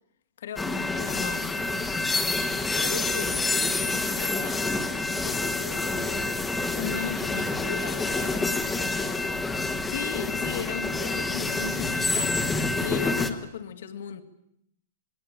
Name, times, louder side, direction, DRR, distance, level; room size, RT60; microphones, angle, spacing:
voice 1, 0.4-1.6 6.8-7.7 9.9-12.5 12.8-14.2, left 9 dB, 65° left, 2.3 m, -36 dB
sound 1, 0.6-13.3, left 3 dB, 5° left, 1.3 m, -27 dB
voice 2, 2.7-6.9 7.3-9.4, left 6 dB, 90° left, 6.4 m, -41 dB
27.0 x 21.0 x 8.8 m
supercardioid pair, 180°, 0 cm